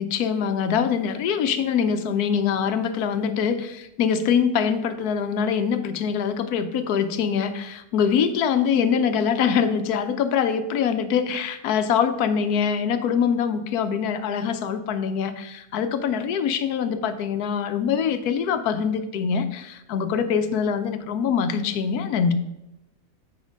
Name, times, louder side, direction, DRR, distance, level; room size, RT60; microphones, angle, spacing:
voice 1, 0.0-22.3, left 7 dB, 90° left, 10 dB, 1.2 m, -24 dB
7.3 x 5.2 x 5.1 m, 0.93 s
omnidirectional pair, 1.6 m